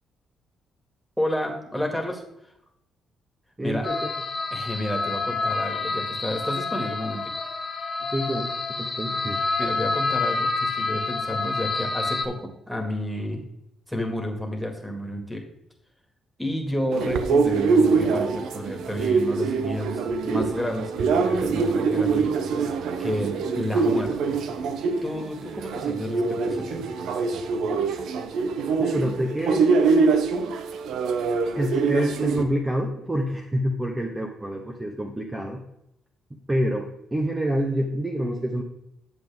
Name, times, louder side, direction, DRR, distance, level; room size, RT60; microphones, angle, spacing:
voice 1, 1.2-2.2 3.6-3.9 4.5-7.2 9.6-13.4 13.9-15.4 16.4-22.4 23.0-24.4 25.0-26.9, equal, ahead, 3 dB, 1.9 m, -30 dB
voice 2, 3.6-4.1 8.1-9.4 27.7-27.8 28.8-29.7 31.5-35.6 36.5-38.6, equal, 15° right, 1 dB, 1.0 m, -27 dB
sound 1, 3.8-12.3, left 4 dB, 30° left, 1.3 m, -28 dB
sound 2, 16.9-32.4, right 4 dB, 80° right, 0.7 m, -24 dB
8.3 x 7.5 x 3.6 m, 0.82 s
cardioid pair, 90°, 0 cm